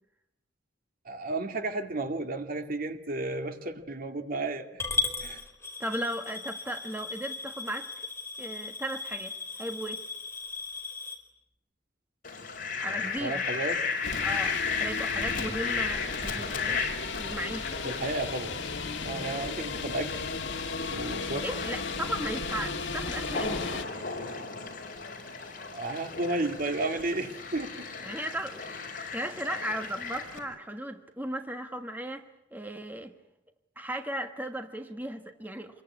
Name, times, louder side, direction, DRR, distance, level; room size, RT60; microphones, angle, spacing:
voice 1, 1.1-4.7 5.2-5.4 13.2-13.8 17.8-18.6 19.0-20.2 20.8-21.5 25.7-28.3, right 2 dB, 50° right, 2.3 m, -33 dB
Coin (dropping) / Glass, 4.8-11.2, left 4 dB, 15° left, 4.4 m, -36 dB
voice 2, 5.8-7.9 8.4-10.0 12.8-13.4 14.2-16.8 17.2-17.8 21.4-23.8 28.0-33.1 33.8-35.8, right 1 dB, 10° right, 1.4 m, -36 dB
Fowl, 12.2-30.4, left 5 dB, 50° left, 5.5 m, -35 dB
sound 1, 14.0-23.9, left 4 dB, 75° left, 1.8 m, -35 dB
27.5 x 22.5 x 9.7 m
head